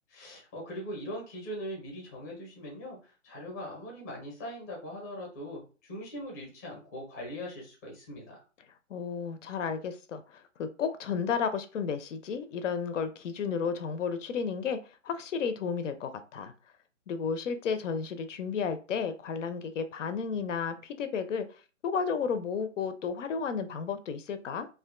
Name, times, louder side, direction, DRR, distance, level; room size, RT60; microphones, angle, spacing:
voice 1, 0.1-8.4, equal, 15° left, -1 dB, 0.5 m, -41 dB
voice 2, 8.9-14.8 15.0-16.5 17.1-21.5 21.8-24.7, left 6 dB, 70° left, 10 dB, 0.5 m, -32 dB
2.4 x 2.2 x 2.4 m, 0.34 s
hypercardioid pair, 145°, 38 cm